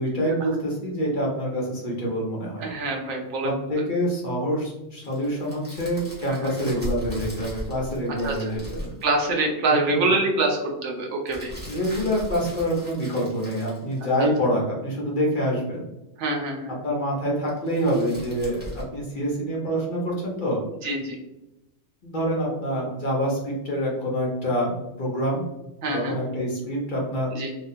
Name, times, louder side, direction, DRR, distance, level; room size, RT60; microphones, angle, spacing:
voice 1, 0.0-2.7 3.4-8.9 10.0-10.1 11.7-15.9 16.8-20.6 22.0-25.4 25.9-27.3, equal, 50° left, -3 dB, 0.7 m, -26 dB
voice 2, 2.6-3.8 6.3-6.5 8.2-8.4 9.0-11.5 16.2-16.8 20.8-21.2 25.8-26.2 27.3-27.5, right 2 dB, 80° right, 1 dB, 0.9 m, -25 dB
sound 1, 5.0-9.1 11.3-14.4 17.5-18.8, equal, 10° right, 0.6 m, -38 dB
2.4 x 2.2 x 2.5 m, 0.97 s
omnidirectional pair, 1.2 m